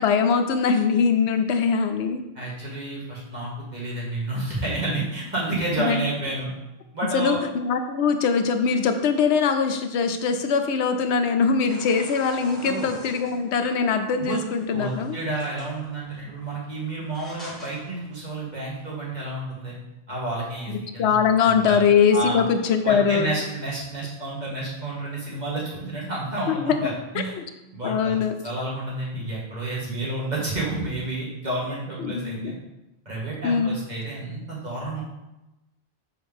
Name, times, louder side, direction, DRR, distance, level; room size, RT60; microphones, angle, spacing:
voice 1, 0.0-2.2 5.8-6.0 7.1-15.2 20.7-23.3 26.5-26.7 27.1-27.2 27.8-28.3 32.0-32.5 33.4-33.8, left 6 dB, 85° left, 7 dB, 0.9 m, -22 dB
voice 2, 2.4-6.5 6.9-7.4 12.6-12.9 14.2-14.4 14.7-19.7 20.1-21.1 21.4-21.8 22.1-22.4 22.8-27.4 27.7-28.1 28.4-32.6 33.1-35.0, right 2 dB, 40° right, -6 dB, 2.0 m, -30 dB
sound 1, 11.7-19.1, equal, ahead, 1.7 m, -47 dB
6.4 x 4.6 x 3.5 m, 0.97 s
omnidirectional pair, 1.1 m